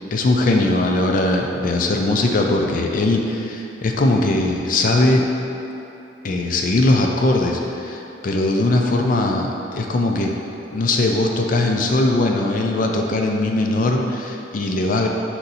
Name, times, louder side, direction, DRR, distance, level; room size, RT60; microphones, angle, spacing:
voice 1, 0.1-5.3 6.2-10.3 10.7-15.1, left 2 dB, 45° left, 2 dB, 0.4 m, -20 dB
4.3 x 2.7 x 3.9 m, 2.9 s
head